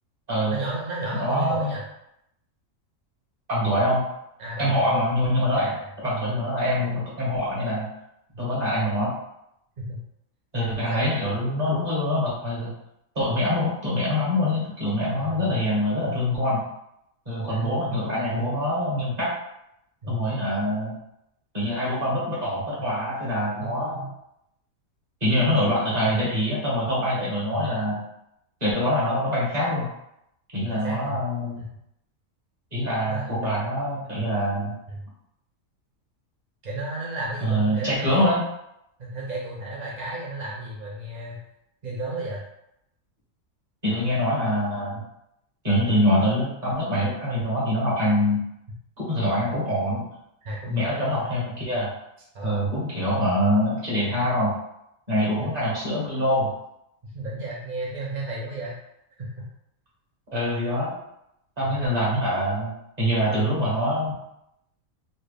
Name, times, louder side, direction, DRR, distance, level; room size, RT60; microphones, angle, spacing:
voice 1, 0.5-1.8 4.4-5.1 5.5-5.9 8.3-8.4 9.8-10.0 10.9-11.1 15.2-15.5 17.4-17.9 20.0-20.2 23.6-24.1 25.4-25.7 26.0-26.2 27.5-27.7 30.7-31.2 31.6-31.7 33.1-33.3 34.9-35.0 36.6-38.2 39.0-41.4 41.8-42.4 50.4-51.2 52.3-52.7 55.4-55.5 57.0-58.7 59.2-59.5, right 2 dB, 50° right, -4 dB, 0.5 m, -33 dB
voice 2, 1.2-1.7 3.5-4.0 4.6-5.8 6.0-7.9 8.4-9.1 10.5-12.7 13.1-16.6 17.2-19.3 20.1-20.9 21.5-24.0 25.2-28.0 28.6-29.9 30.5-31.6 32.7-34.7 37.4-38.4 43.8-45.0 45.6-48.4 49.0-50.0 50.7-51.9 52.4-54.5 55.1-56.5 60.3-61.0 61.6-62.7 63.0-64.1, equal, 30° right, -8 dB, 1.5 m, -24 dB
4.1 x 2.0 x 3.3 m, 0.80 s
omnidirectional pair, 1.4 m